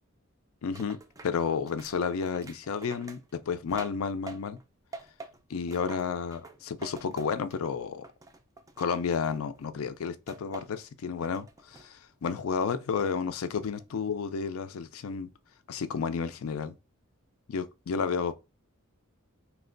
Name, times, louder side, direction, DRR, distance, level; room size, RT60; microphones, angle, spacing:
voice 1, 0.6-1.0 1.2-4.6 5.5-8.0 8.8-15.3 15.7-16.7 17.5-18.3, left 6 dB, 75° left, 0.4 m, -31 dB
sound 1, 0.7-4.6 4.9-7.7 8.0-9.7 10.3-10.9 11.2-11.9 12.3-13.2 13.5-14.0, right 3 dB, 15° right, 0.3 m, -48 dB
3.0 x 2.2 x 3.7 m
head